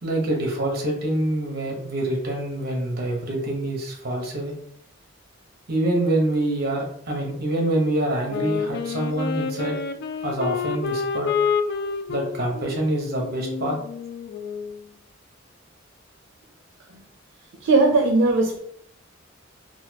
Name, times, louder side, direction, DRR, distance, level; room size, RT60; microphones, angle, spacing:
voice 1, 0.0-4.5 5.7-9.8 10.2-11.3 12.1-13.8 16.9-17.0, right 1 dB, 50° right, 0 dB, 1.0 m, -26 dB
Wind instrument woodwind instrument, 8.3-14.9, left 5 dB, 55° left, 0.3 m, -29 dB
voice 2, 17.6-18.6, right 3 dB, 85° right, 3 dB, 0.5 m, -18 dB
4.1 x 2.2 x 2.8 m, 0.66 s
head